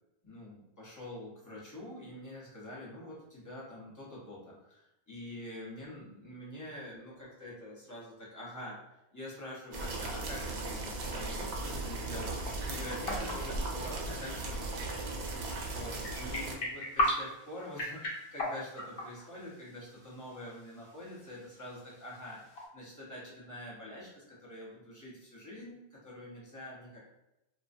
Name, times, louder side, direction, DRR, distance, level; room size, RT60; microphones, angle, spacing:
voice 1, 0.2-8.8 9.1-15.0 15.6-22.4 22.7-27.0, left 1 dB, 20° left, -6 dB, 0.7 m, -46 dB
sound 1, 9.7-16.5, right 2 dB, 85° right, 0.8 m, -37 dB
sound 2, 13.0-22.7, left 1 dB, 70° left, 1.0 m, -39 dB
2.4 x 2.1 x 2.5 m, 0.90 s
omnidirectional pair, 1.1 m